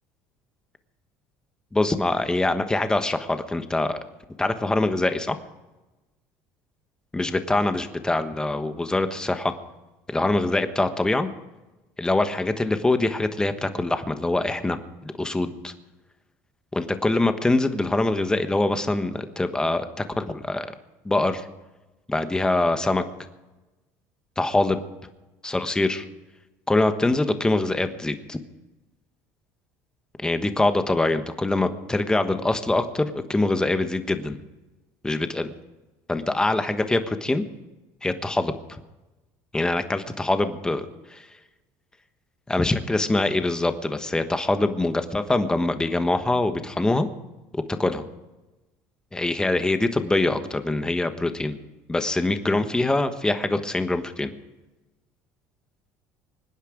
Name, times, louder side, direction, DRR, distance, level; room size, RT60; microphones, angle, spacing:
voice 1, 1.7-4.0 4.4-5.4 7.1-9.5 10.1-11.3 12.0-15.7 16.7-20.7 21.0-21.5 22.1-23.0 24.4-24.8 25.4-26.0 26.7-28.4 30.2-34.4 35.0-35.5 36.1-37.4 38.0-38.8 39.5-41.2 42.5-47.1 47.5-48.0 49.1-51.6 51.9-54.3, left 2 dB, 10° left, 9 dB, 1.2 m, -24 dB
24.5 x 10.0 x 5.1 m, 1.1 s
cardioid pair, 115°, 8 cm